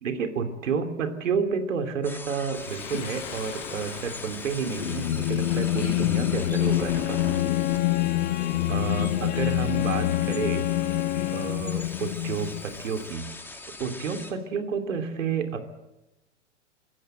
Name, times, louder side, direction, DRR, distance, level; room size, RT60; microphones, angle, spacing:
voice 1, 0.0-7.2 8.7-10.7 11.3-13.3 13.8-15.7, right 6 dB, 85° right, 7 dB, 3.0 m, -30 dB
sound 1, 2.0-14.3, left 2 dB, 5° left, 2.4 m, -42 dB
Singing, 2.6-13.1, left 14 dB, 75° left, 0.9 m, -27 dB
Bowed string instrument, 6.4-11.7, left 13 dB, 25° left, 0.9 m, -33 dB
26.5 x 15.0 x 8.0 m, 0.97 s
hypercardioid pair, 120°, 37 cm